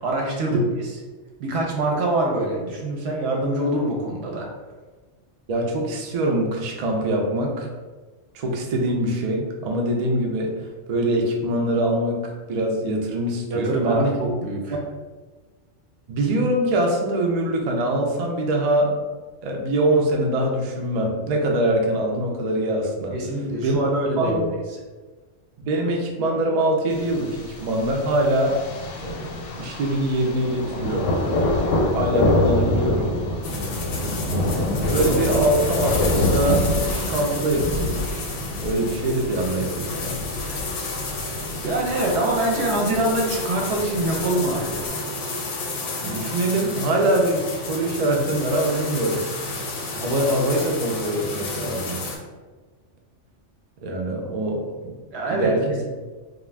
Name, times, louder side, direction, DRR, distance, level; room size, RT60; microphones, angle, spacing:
voice 1, 0.0-1.0 1.4-4.5 13.5-14.8 23.1-24.5 41.6-45.0 55.1-55.8, right 1 dB, 70° right, -1 dB, 0.8 m, -24 dB
voice 2, 5.5-7.7 8.3-14.1 14.7-14.8 16.1-19.0 19.4-23.1 23.6-23.8 24.2-24.4 25.6-28.6 29.0-31.1 31.9-33.1 34.4-38.3 38.6-40.3 46.0-49.2 49.9-52.0 53.8-55.0 55.3-55.6, right 1 dB, 90° right, 1 dB, 0.3 m, -23 dB
Thunder, 26.9-44.9, left 1 dB, 85° left, 0.9 m, -26 dB
sound 1, 33.4-52.2, left 3 dB, 60° left, 0.6 m, -31 dB
2.3 x 2.2 x 3.2 m, 1.3 s
omnidirectional pair, 1.3 m